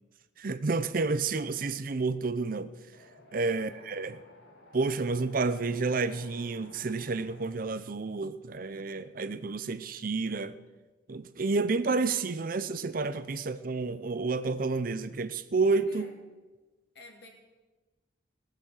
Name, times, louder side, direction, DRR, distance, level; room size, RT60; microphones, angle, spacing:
voice 1, 0.4-2.7 3.3-4.2 4.7-10.6 11.1-16.1, right 3 dB, 45° right, 0.6 m, -30 dB
Wind, 2.9-7.5, left 1 dB, 80° left, 2.6 m, -55 dB
voice 2, 16.9-17.3, left 1 dB, 55° left, 3.1 m, -51 dB
18.5 x 8.0 x 7.4 m
head